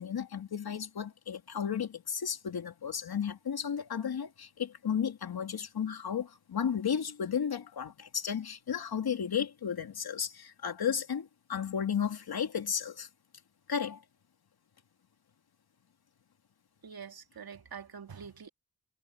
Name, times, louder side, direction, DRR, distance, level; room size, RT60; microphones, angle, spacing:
voice 1, 0.0-13.1 13.7-14.0, left 7 dB, 80° left, 3.0 m, -33 dB
voice 2, 16.8-18.5, right 6 dB, 75° right, 2.5 m, -45 dB
cardioid pair, 55°, 37 cm